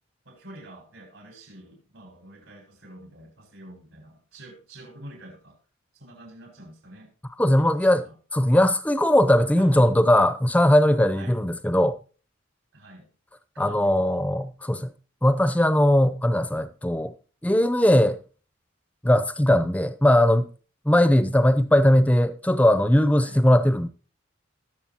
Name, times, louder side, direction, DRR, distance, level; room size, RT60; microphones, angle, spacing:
voice 1, 0.2-5.6 5.9-7.1 7.6-8.2 9.6-9.9 11.1-11.4 12.7-13.1 13.5-14.2 15.4-15.6 23.2-23.4, right 1 dB, 75° right, 5.2 m, -46 dB
voice 2, 7.4-8.0 8.3-12.0 13.6-14.9 15.2-17.1 17.4-18.2 19.0-20.4 20.9-23.9, left 1 dB, 5° left, 0.6 m, -19 dB
19.5 x 6.8 x 2.9 m
head